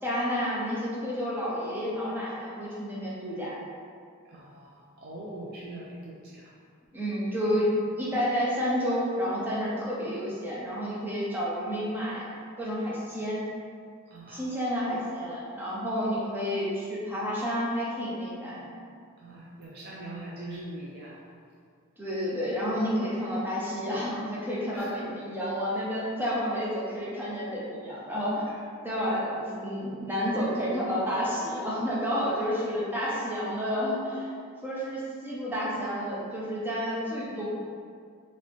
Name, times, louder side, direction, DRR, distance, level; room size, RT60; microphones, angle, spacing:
voice 1, 0.0-3.6 6.9-12.3 12.6-13.4 14.3-18.7 22.0-28.4 28.8-34.3 34.6-37.5, equal, 10° right, -7 dB, 0.6 m, -30 dB
voice 2, 4.3-4.7 5.0-6.2 14.1-14.4 19.2-21.1 24.7-24.9, right 1 dB, 50° right, -5 dB, 0.4 m, -41 dB
3.7 x 2.5 x 3.2 m, 2.2 s
head